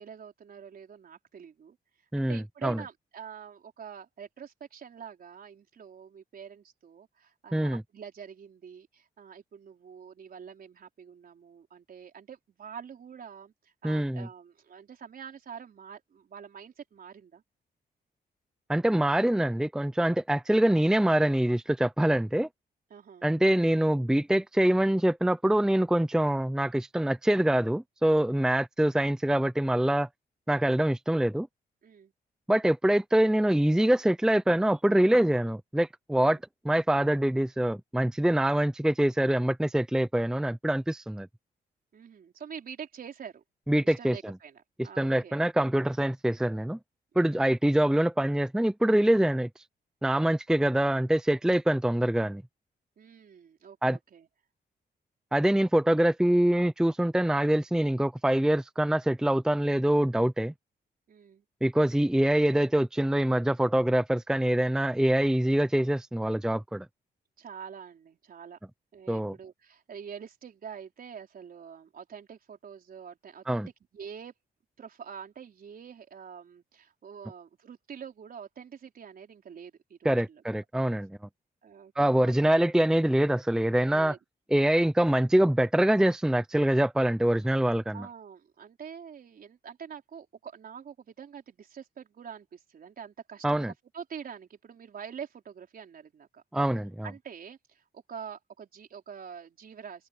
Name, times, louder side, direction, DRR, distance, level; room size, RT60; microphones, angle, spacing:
voice 1, 0.0-1.8 2.2-17.4 22.9-23.3 28.3-28.5 31.8-32.1 36.2-36.4 41.9-43.4 43.8-45.4 47.1-47.5 53.0-54.3 61.1-61.4 67.4-68.6 68.9-73.6 73.9-74.3 74.8-80.4 81.6-82.6 83.9-84.2 87.9-93.6 93.9-96.4 97.0-100.1, right 7 dB, 60° right, 4.5 m, -46 dB
voice 2, 2.1-2.8 7.5-7.8 13.8-14.3 18.7-22.5 23.2-30.1 30.5-31.5 32.5-36.4 36.6-41.3 43.7-44.3 45.0-46.8 47.2-49.5 50.0-52.4 53.8-54.0 55.3-60.5 61.6-66.9 69.1-69.3 73.5-73.7 80.0-81.2 82.0-84.1 84.5-88.1 93.4-93.7 96.5-97.1, right 1 dB, 5° right, 0.6 m, -24 dB
wide cardioid pair, 125°, 17 cm